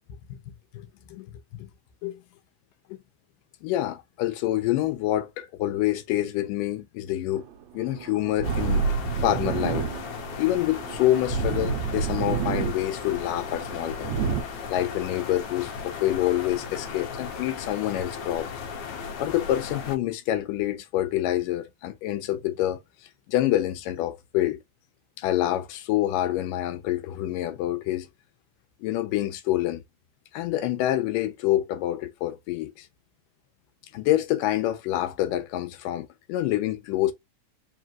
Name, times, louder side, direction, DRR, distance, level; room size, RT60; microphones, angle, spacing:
voice 1, 0.7-1.3 1.6-1.7 2.0-2.2 2.9-3.0 3.6-7.5 7.7-8.9 9.2-9.8 10.4-14.1 14.7-18.5 19.2-22.8 23.3-24.6 25.2-28.1 28.8-29.8 30.3-32.9 33.9-37.1, left 14 dB, 85° left, 2.5 m, -27 dB
sound 1, 7.3-14.4, right 6 dB, 70° right, 1.7 m, -29 dB
sound 2, 8.4-20.0, left 5 dB, 70° left, 2.0 m, -36 dB
5.3 x 2.4 x 2.8 m
omnidirectional pair, 3.7 m